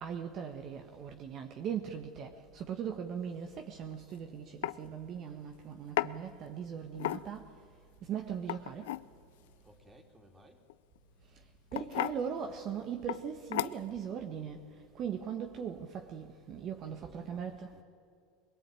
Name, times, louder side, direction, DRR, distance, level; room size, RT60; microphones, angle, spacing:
voice 1, 0.0-7.5 8.1-8.9 11.7-14.6 14.9-17.7, right 8 dB, 45° right, 5 dB, 1.5 m, -39 dB
sound 1, 3.9-4.1 4.6-4.8 6.0-6.1 6.9-7.5 8.4-9.1 10.7-11.0 11.7-12.2 13.1-13.2 13.5-14.0, left 16 dB, 75° left, 0.5 m, -34 dB
voice 2, 9.6-10.7 16.9-17.8, right 1 dB, 20° right, 5 dB, 3.4 m, -59 dB
22.0 x 21.0 x 9.0 m, 2.4 s
hypercardioid pair, 100°, 0 cm